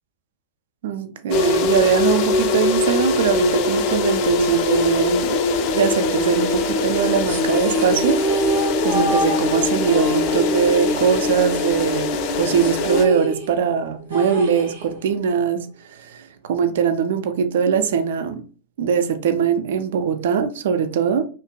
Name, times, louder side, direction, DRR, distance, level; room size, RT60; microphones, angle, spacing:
voice 1, 0.8-15.7 16.0-18.4 18.8-21.3, right 7 dB, 60° right, 0.4 m, -21 dB
sound 1, 1.3-13.1, left 3 dB, 40° left, 0.4 m, -22 dB
sound 2, 7.3-11.9 12.2-12.3 12.6-15.2, right 2 dB, 80° right, 0.9 m, -27 dB
2.8 x 2.5 x 2.2 m
figure-of-eight pair, 90°, 0 cm